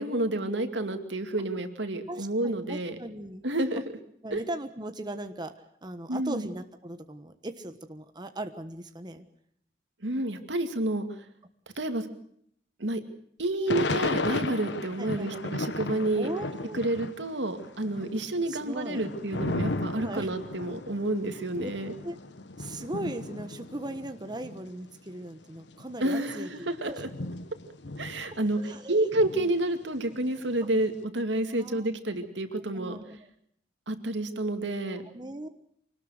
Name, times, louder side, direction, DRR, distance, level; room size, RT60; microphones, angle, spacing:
voice 1, 0.0-3.0 3.4-3.8 4.3-4.4 6.1-6.5 10.0-11.1 11.8-12.1 12.8-13.0 13.4-16.3 16.7-21.9 26.0-27.1 28.0-28.6 28.9-33.0 33.9-35.0, right 1 dB, 85° right, 7 dB, 2.5 m, -29 dB
voice 2, 2.1-3.4 4.2-5.5 5.8-9.3 15.0-15.4 16.2-16.8 18.5-19.0 20.0-20.3 21.6-21.7 22.0-22.2 22.6-27.0 28.3-29.1 29.3-29.5 31.5-31.9 32.6-33.3 34.9-35.5, right 1 dB, 25° right, 7 dB, 1.2 m, -38 dB
Thunder / Rain, 13.7-17.3 17.6-24.7 25.3-25.4 25.6-28.7 29.1-30.8, left 2 dB, 75° left, 1.2 m, -35 dB
25.0 x 19.0 x 6.5 m, 0.68 s
head